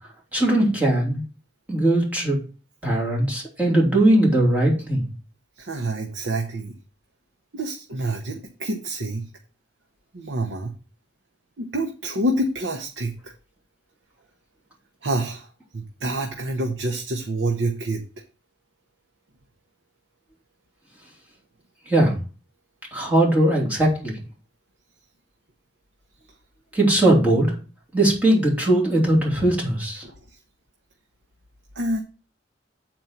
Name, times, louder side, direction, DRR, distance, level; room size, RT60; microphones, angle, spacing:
voice 1, 0.3-1.2 1.7-2.4 2.8-5.0 21.9-22.1 22.9-24.1 26.7-27.5 27.9-30.0, right 1 dB, 10° right, -4 dB, 2.9 m, -19 dB
voice 2, 5.6-6.7 7.5-9.3 10.1-10.7 11.6-13.3 15.0-15.5 15.7-18.0 31.7-32.0, right 1 dB, 85° right, 3 dB, 1.0 m, -27 dB
7.8 x 4.5 x 5.7 m, 0.35 s
head